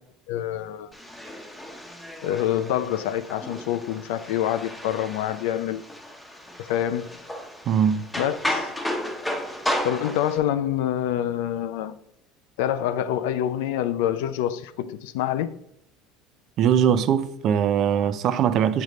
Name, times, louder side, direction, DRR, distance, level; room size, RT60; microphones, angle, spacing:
voice 1, 0.3-0.9 2.2-5.8 6.6-7.1 8.2-8.7 9.8-12.0 12.6-15.6, left 11 dB, 85° left, 0.4 m, -26 dB
sound 1, 0.9-10.4, equal, 10° left, 1.0 m, -33 dB
voice 2, 7.7-8.0 16.6-18.8, right 8 dB, 50° right, 0.5 m, -21 dB
8.0 x 5.2 x 3.1 m
supercardioid pair, 120°, 0 cm